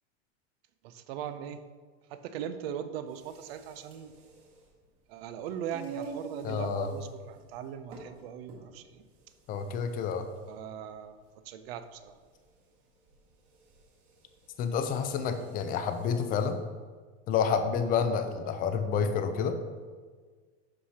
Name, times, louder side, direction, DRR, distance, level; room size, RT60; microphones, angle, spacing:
voice 1, 0.8-1.6 2.1-4.1 5.1-9.0 10.5-12.1, right 9 dB, 55° right, 11 dB, 0.6 m, -40 dB
sound 1, 3.0-16.6, right 5 dB, 40° right, 1.8 m, -49 dB
voice 2, 6.4-6.9 9.5-10.3 14.6-16.6 17.3-19.6, left 6 dB, 25° left, 8 dB, 0.5 m, -29 dB
11.5 x 4.8 x 2.9 m, 1.5 s
supercardioid pair, 140°, 35 cm